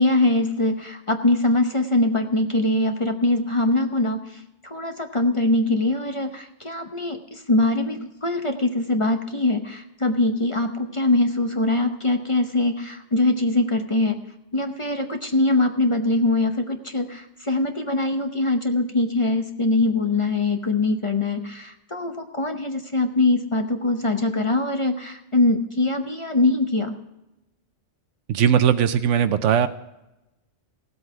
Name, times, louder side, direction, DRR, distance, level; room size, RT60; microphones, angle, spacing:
voice 1, 0.0-14.2 14.5-26.9, left 2 dB, 30° left, 5 dB, 0.8 m, -22 dB
voice 2, 28.3-29.7, right 8 dB, 80° right, 11 dB, 0.9 m, -19 dB
16.5 x 8.1 x 4.8 m, 0.94 s
omnidirectional pair, 1.2 m